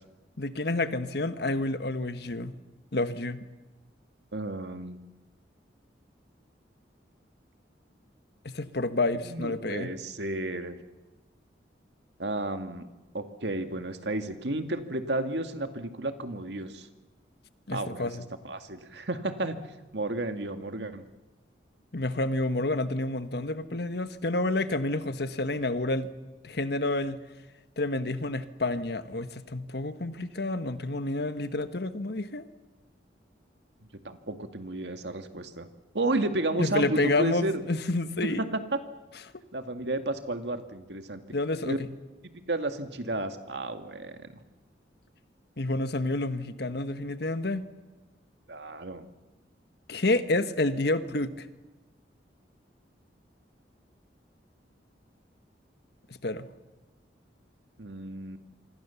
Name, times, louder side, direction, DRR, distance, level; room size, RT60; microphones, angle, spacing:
voice 1, 0.4-2.6 2.9-3.5 8.4-9.9 17.7-18.2 21.9-26.1 26.4-27.2 27.8-32.5 36.6-38.4 41.3-41.8 45.6-47.6 49.9-51.4 56.2-56.5, left 2 dB, 65° left, 11 dB, 1.4 m, -29 dB
voice 2, 4.3-5.0 9.2-10.8 12.2-12.9 13.1-16.9 17.7-18.2 18.4-19.6 19.9-21.0 34.0-35.7 35.9-37.6 38.2-38.8 39.5-41.2 41.6-41.8 42.5-44.3 48.5-49.1 57.8-58.4, right 2 dB, 70° right, 7 dB, 2.1 m, -32 dB
27.0 x 25.0 x 7.1 m, 1.1 s
head